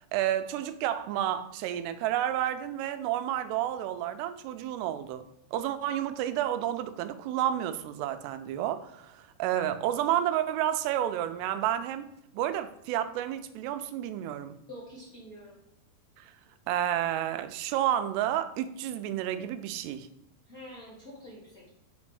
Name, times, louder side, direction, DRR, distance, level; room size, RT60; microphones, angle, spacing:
voice 1, 0.1-5.2 5.5-12.1 12.3-14.6 16.2-16.3 16.7-20.1, right 11 dB, 90° right, 2.7 m, -30 dB
voice 2, 14.7-15.6 20.5-21.7, equal, 45° left, 1.1 m, -46 dB
5.7 x 4.3 x 4.7 m
omnidirectional pair, 4.8 m